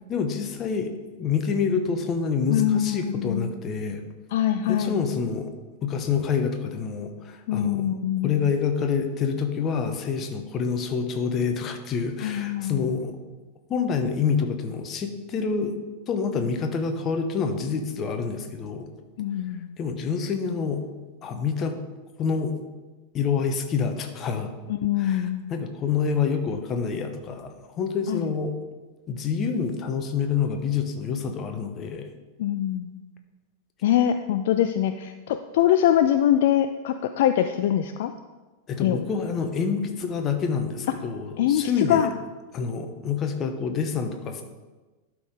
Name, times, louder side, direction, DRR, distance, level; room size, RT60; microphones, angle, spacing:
voice 1, 0.1-0.9 1.2-4.0 4.7-5.5 5.8-7.8 8.2-13.2 13.7-15.7 16.1-18.9 19.8-20.8 21.2-21.8 22.2-22.5 23.1-24.5 25.0-28.5 29.1-32.1 38.7-42.1 42.5-44.4, left 6 dB, 30° left, 6 dB, 1.1 m, -27 dB
voice 2, 2.5-3.5 4.3-5.0 7.5-8.4 12.2-12.9 19.2-19.7 24.7-25.4 28.1-28.3 32.4-32.9 33.8-38.1 38.8-39.1 41.4-42.1, left 11 dB, 55° left, 9 dB, 0.4 m, -23 dB
11.5 x 4.7 x 5.1 m, 1.2 s
figure-of-eight pair, 90°, 0 cm